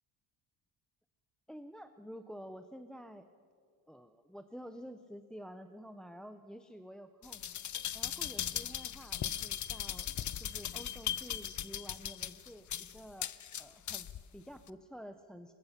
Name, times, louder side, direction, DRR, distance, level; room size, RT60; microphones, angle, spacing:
voice 1, 1.5-3.2 3.9-7.4 7.9-10.1 10.4-13.3 13.6-15.5, equal, ahead, 9 dB, 0.5 m, -50 dB
sound 1, 7.2-14.2 14.7-14.8, left 10 dB, 40° left, 0.6 m, -38 dB
22.5 x 22.0 x 5.8 m, 2.4 s
cardioid pair, 140°, 47 cm